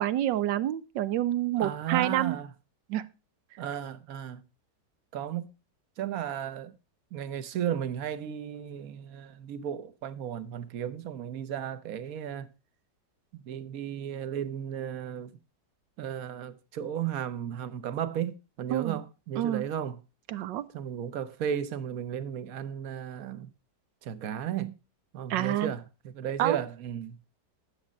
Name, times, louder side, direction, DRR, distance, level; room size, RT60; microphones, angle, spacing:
voice 1, 0.0-2.4 2.9-3.0 18.7-19.0 19.3-19.7 20.3-20.6 25.3-25.7 26.4-26.6, right 12 dB, 90° right, 1.4 m, -28 dB
voice 2, 1.6-2.5 3.6-4.4 5.1-5.5 6.0-6.7 7.1-12.5 13.3-15.3 16.0-20.0 20.7-23.5 24.0-24.7 25.1-27.2, right 9 dB, 60° right, 1.2 m, -34 dB
10.0 x 7.3 x 5.2 m
omnidirectional pair, 1.9 m